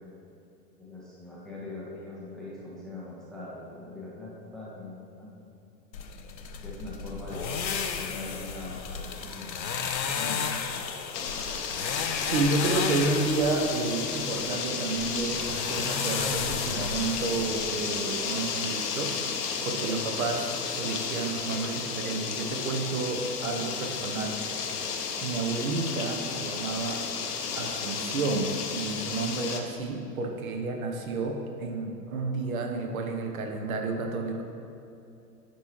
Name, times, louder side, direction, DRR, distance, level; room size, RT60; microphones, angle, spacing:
voice 1, 0.8-5.3 6.6-10.5, left 2 dB, ahead, -7 dB, 0.5 m, -42 dB
sound 1, 5.9-17.7, left 6 dB, 90° left, 0.6 m, -33 dB
sound 2, 11.1-29.6, left 6 dB, 65° left, 0.9 m, -33 dB
voice 2, 12.2-24.4 25.2-27.0 27.5-34.4, right 3 dB, 55° right, 3 dB, 1.0 m, -31 dB
9.5 x 4.5 x 3.1 m, 2.7 s
figure-of-eight pair, 100°, 50 cm